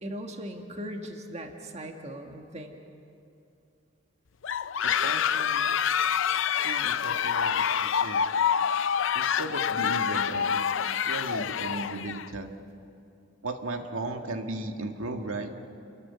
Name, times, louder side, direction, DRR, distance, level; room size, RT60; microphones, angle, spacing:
voice 1, 0.0-2.8, equal, 30° right, 3 dB, 1.7 m, -39 dB
sound 1, 4.4-12.3, left 8 dB, 65° left, 0.5 m, -27 dB
voice 2, 4.8-5.7 6.6-8.3 9.1-10.6 11.1-12.5 13.4-15.5, right 2 dB, 85° right, 4 dB, 1.7 m, -36 dB
29.5 x 14.0 x 9.8 m, 2.6 s
head